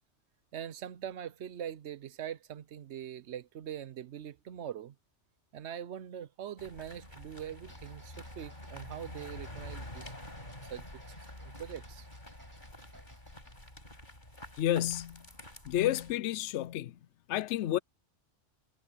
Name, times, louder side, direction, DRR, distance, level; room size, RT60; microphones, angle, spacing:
voice 1, 0.5-4.9 5.5-10.1 10.4-10.9 11.4-12.1, right 9 dB, 65° right, 1.0 m, -42 dB
sound 1, 6.6-16.2, left 1 dB, 40° left, 7.1 m, -48 dB
sound 2, 7.5-13.7, equal, 15° right, 6.9 m, -62 dB
voice 2, 14.6-15.2 15.7-16.9 17.3-17.8, left 12 dB, 70° left, 0.9 m, -30 dB
omnidirectional pair, 1.3 m